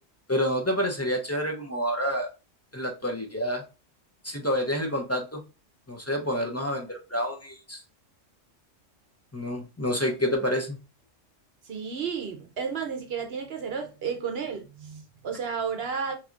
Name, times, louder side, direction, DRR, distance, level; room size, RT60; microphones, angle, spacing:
voice 1, 0.3-2.3 2.7-3.6 4.2-5.4 5.9-7.8 9.3-10.8, equal, 20° left, 0.4 m, -28 dB
voice 2, 11.6-16.2, right 6 dB, 60° right, 0.9 m, -32 dB
6.0 x 2.8 x 2.5 m
omnidirectional pair, 1.3 m